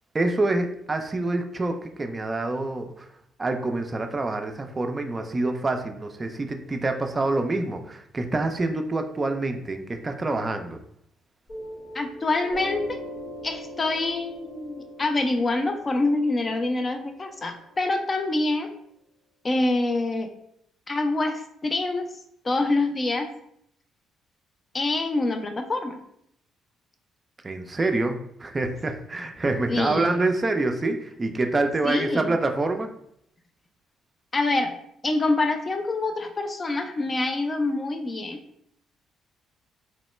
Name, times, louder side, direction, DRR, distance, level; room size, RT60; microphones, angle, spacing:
voice 1, 0.1-3.1 3.4-10.8 27.4-32.9, right 2 dB, 30° right, 5 dB, 0.4 m, -26 dB
Piano, 11.5-18.5, equal, 55° left, 1.1 m, -41 dB
voice 2, 11.9-13.0 13.4-18.7 19.4-20.3 20.9-22.1 22.4-23.3 24.7-26.0 29.7-30.3 31.8-32.3 34.3-34.7 35.0-38.4, left 2 dB, 35° left, 6 dB, 0.5 m, -26 dB
3.0 x 2.1 x 3.1 m, 0.72 s
hypercardioid pair, 55°, 0 cm